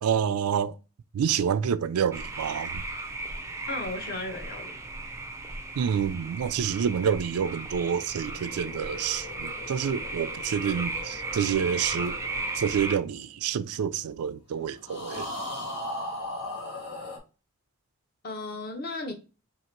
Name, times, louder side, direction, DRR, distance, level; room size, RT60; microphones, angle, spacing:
voice 1, 0.0-0.8 1.1-2.8 5.8-12.2 12.5-15.3, right 8 dB, 85° right, 0.4 m, -28 dB
sound 1, 2.1-13.0, right 2 dB, 15° right, 0.3 m, -36 dB
voice 2, 3.7-4.8 18.2-19.1, left 2 dB, 45° left, 0.8 m, -35 dB
sound 2, 8.2-13.8 14.8-17.2, left 2 dB, 85° left, 1.2 m, -39 dB
2.8 x 2.8 x 4.4 m
head